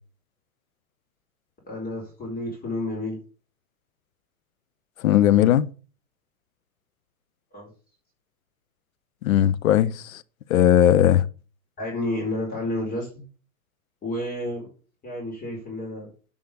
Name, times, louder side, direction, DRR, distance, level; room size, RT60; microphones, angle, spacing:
voice 1, 1.7-3.2 7.5-7.7 11.8-13.2 14.0-14.7 15.0-16.1, left 1 dB, 20° left, 4.7 m, -30 dB
voice 2, 5.0-5.7 9.2-10.2 10.5-11.2, left 11 dB, 70° left, 0.9 m, -18 dB
9.7 x 5.5 x 6.9 m
hypercardioid pair, 105°, 44 cm